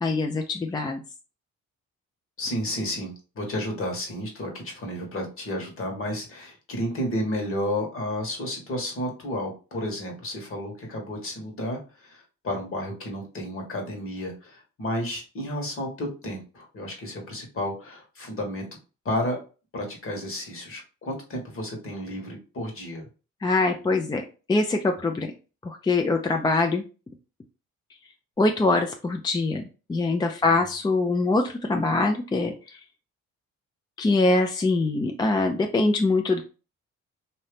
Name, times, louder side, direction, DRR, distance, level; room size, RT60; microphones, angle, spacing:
voice 1, 0.0-1.0 23.4-24.2 24.5-25.3 25.6-26.8 28.4-32.8 34.0-36.4, left 3 dB, 15° left, 4 dB, 0.3 m, -23 dB
voice 2, 2.4-18.7 19.0-19.4 19.7-23.0 30.4-30.5, left 1 dB, 45° left, 1 dB, 1.4 m, -32 dB
2.7 x 2.7 x 3.3 m, 0.34 s
cardioid pair, 90°, 30 cm